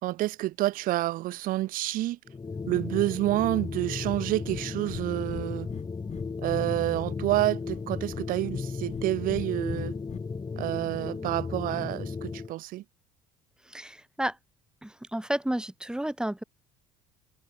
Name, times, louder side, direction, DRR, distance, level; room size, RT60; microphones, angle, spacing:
voice 1, 0.0-2.2 2.7-5.7 6.4-10.0 10.6-12.8, right 16 dB, 55° right, 2.1 m, -28 dB
sound 1, 2.3-12.5, left 4 dB, 25° left, 3.7 m, -35 dB
Breathing, 4.0-4.2 4.5-4.6 4.9-5.0 5.3-6.6 6.9-7.8 8.1-9.0 9.3-10.2, left 9 dB, 45° left, 6.9 m, -39 dB
voice 2, 13.7-14.4 14.8-16.4, right 1 dB, 5° right, 2.8 m, -31 dB
hypercardioid pair, 60°, 17 cm